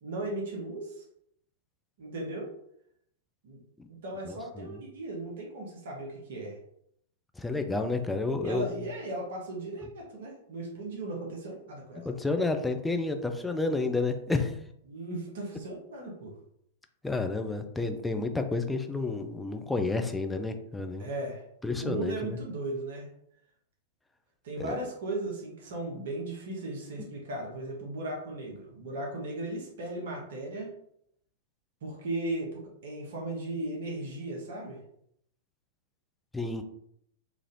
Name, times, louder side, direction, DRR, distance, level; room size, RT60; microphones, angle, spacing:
voice 1, 0.0-1.0 2.0-2.5 3.4-3.6 3.9-6.6 8.4-12.1 14.9-16.3 21.0-21.4 21.8-23.1 24.4-30.7 31.8-34.8, right 2 dB, 55° right, -1 dB, 0.8 m, -36 dB
voice 2, 4.2-4.8 7.4-8.6 12.1-14.6 17.0-21.1 21.6-22.4 24.6-24.8 36.3-36.6, left 3 dB, 5° left, 5 dB, 0.3 m, -30 dB
3.1 x 2.4 x 2.6 m, 0.72 s
figure-of-eight pair, 100°, 0 cm